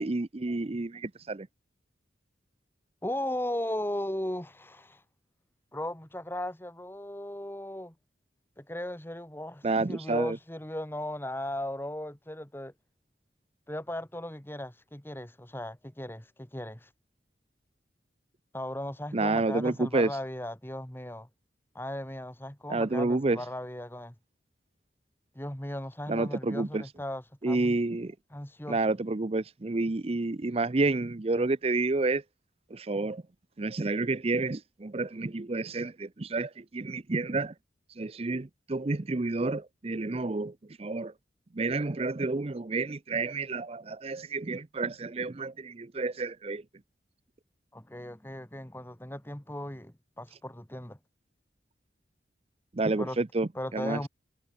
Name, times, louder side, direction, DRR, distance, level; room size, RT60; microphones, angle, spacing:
voice 1, 0.0-1.5 9.6-10.4 19.1-20.2 22.7-23.4 26.1-26.9 27.4-28.1 28.7-32.2 32.7-33.2 33.6-37.5 37.9-41.1 41.5-46.6 52.7-54.1, right 3 dB, 35° right, 0.6 m, -30 dB
voice 2, 3.0-5.0 5.7-7.9 8.6-12.7 13.7-16.9 18.5-21.3 21.8-24.1 25.4-27.8 28.3-28.8 47.7-51.0 53.0-53.2 53.6-54.1, left 1 dB, 10° left, 1.9 m, -37 dB
head